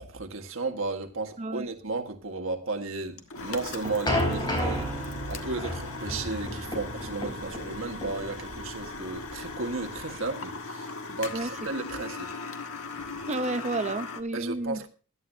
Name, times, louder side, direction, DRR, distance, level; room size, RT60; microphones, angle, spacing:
voice 1, 0.0-4.9 5.3-12.3 14.3-14.9, right 3 dB, 65° right, 1.6 m, -34 dB
voice 2, 1.4-1.7 11.3-11.5 13.3-14.8, right 2 dB, 30° right, 0.7 m, -31 dB
sound 1, 3.2-14.2, left 3 dB, 85° left, 1.4 m, -38 dB
sound 2, 3.4-10.3, equal, 20° left, 3.8 m, -32 dB
16.0 x 11.5 x 2.7 m
head